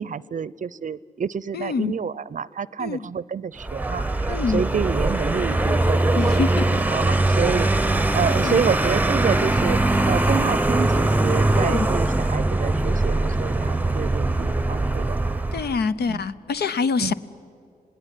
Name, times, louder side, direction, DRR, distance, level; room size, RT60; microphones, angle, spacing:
voice 1, 0.0-6.6 6.9-9.8 10.1-15.4 16.0-16.2 17.0-17.1, right 6 dB, 50° right, 21 dB, 0.6 m, -28 dB
voice 2, 1.5-1.9 2.8-3.0 4.3-4.6 6.2-6.8 8.4-8.6 11.6-11.9 15.5-17.1, left 5 dB, 75° left, 13 dB, 0.8 m, -25 dB
Vehicle, 3.6-15.8, right 2 dB, 10° right, 0.8 m, -21 dB
27.0 x 18.5 x 9.9 m, 2.6 s
cardioid pair, 60°, 17 cm